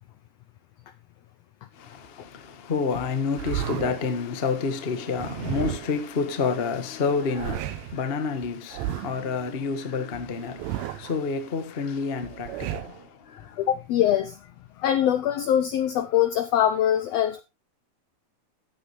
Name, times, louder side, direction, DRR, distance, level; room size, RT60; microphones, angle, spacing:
voice 1, 1.8-13.6, left 5 dB, 50° left, 0.7 m, -29 dB
sound 1, 3.4-4.1 5.2-6.1 7.1-8.0 8.7-9.3 10.3-11.2 12.2-13.0, right 13 dB, 75° right, 1.7 m, -33 dB
voice 2, 13.6-14.4 14.8-17.4, left 10 dB, 80° left, 1.4 m, -23 dB
14.0 x 8.5 x 3.2 m
omnidirectional pair, 3.7 m